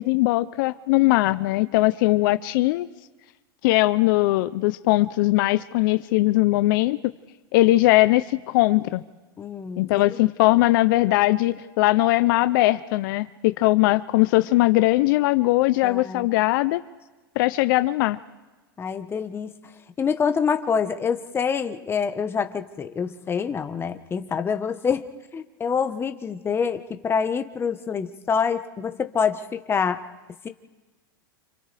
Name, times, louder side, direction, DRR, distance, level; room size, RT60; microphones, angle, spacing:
voice 1, 0.0-2.9 3.6-7.0 7.5-9.0 9.8-16.8 17.4-18.2, left 18 dB, 60° left, 13 dB, 0.6 m, -20 dB
voice 2, 9.4-10.1 15.8-16.3 18.8-19.5 20.0-25.1 25.3-30.0 30.4-30.5, left 6 dB, 20° left, 8 dB, 1.2 m, -26 dB
29.5 x 27.5 x 3.4 m, 1.2 s
supercardioid pair, 125°, 12 cm